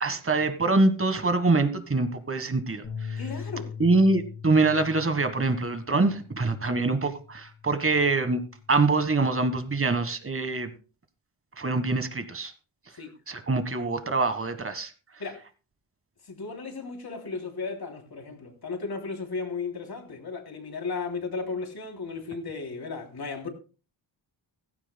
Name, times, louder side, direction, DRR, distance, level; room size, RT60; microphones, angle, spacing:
voice 1, 0.0-3.2 3.8-8.4 8.7-10.7 11.6-12.5 13.3-14.9, right 3 dB, 25° right, 1.5 m, -24 dB
sound 1, 2.8-9.1, left 6 dB, 70° left, 5.8 m, -42 dB
voice 2, 3.2-3.7 13.0-13.1 15.2-15.4 16.3-23.5, left 4 dB, 50° left, 3.1 m, -35 dB
16.0 x 15.5 x 2.2 m
wide cardioid pair, 135°, 47 cm